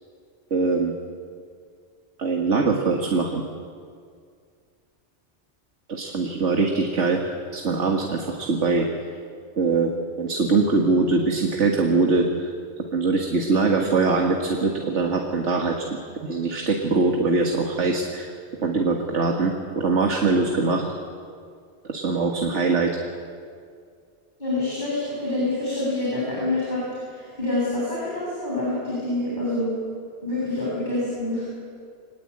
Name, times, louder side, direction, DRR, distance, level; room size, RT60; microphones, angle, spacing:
voice 1, 0.5-0.9 2.2-3.4 5.9-8.9 9.6-9.9 10.2-12.5 12.9-18.3 18.6-20.9 21.9-23.0, right 3 dB, 85° right, 2 dB, 2.1 m, -22 dB
voice 2, 24.4-29.7 30.2-31.4, left 2 dB, 40° left, -7 dB, 8.2 m, -26 dB
25.0 x 20.5 x 8.8 m, 2.2 s
omnidirectional pair, 1.2 m